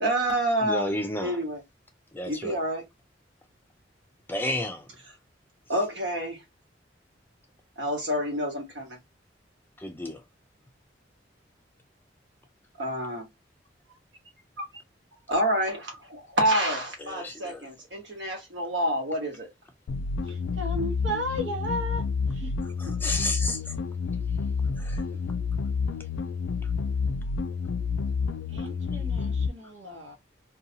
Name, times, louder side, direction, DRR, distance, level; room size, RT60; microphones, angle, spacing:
voice 1, 0.0-0.9 1.2-1.6 2.3-2.8 5.7-6.4 7.8-9.0 12.8-13.2 15.3-19.5, right 1 dB, 70° right, 1.2 m, -28 dB
voice 2, 0.6-1.4 2.1-2.6 4.3-4.9 9.8-10.2 17.0-17.7 22.8-23.8 24.8-25.0, left 1 dB, 10° left, 0.4 m, -32 dB
sound 1, 19.9-29.5, left 5 dB, 90° left, 0.3 m, -29 dB
voice 3, 20.2-22.0 22.3-22.5 28.5-30.2, equal, 85° right, 0.9 m, -34 dB
2.7 x 2.3 x 2.7 m
head